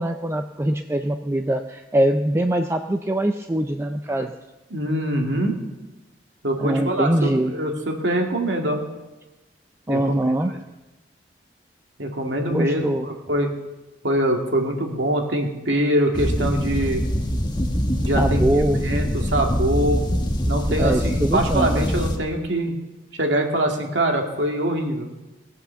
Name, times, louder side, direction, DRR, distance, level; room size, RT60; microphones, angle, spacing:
voice 1, 0.0-4.3 6.6-7.5 9.9-10.5 12.4-13.1 18.1-18.8 20.8-21.9, right 1 dB, 15° right, 6 dB, 0.4 m, -23 dB
voice 2, 4.7-5.6 6.4-8.8 9.9-10.2 12.0-13.5 14.0-17.0 18.0-19.1 19.3-20.0 20.5-22.7 23.1-25.1, right 1 dB, 80° right, 2 dB, 2.2 m, -23 dB
sound 1, 16.1-22.2, equal, 25° left, 1.2 m, -23 dB
19.0 x 8.2 x 7.0 m, 1.1 s
head